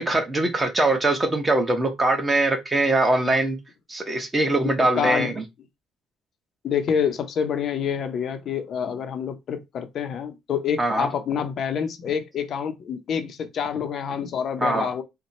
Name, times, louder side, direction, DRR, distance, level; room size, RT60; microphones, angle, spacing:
voice 1, 0.0-3.6 3.9-5.3 10.8-11.1 14.6-14.9, right 2 dB, 15° right, 1.0 m, -22 dB
voice 2, 4.6-5.3 6.6-15.0, left 7 dB, 50° left, 0.6 m, -27 dB
4.2 x 2.1 x 4.1 m
cardioid pair, 130°, 0 cm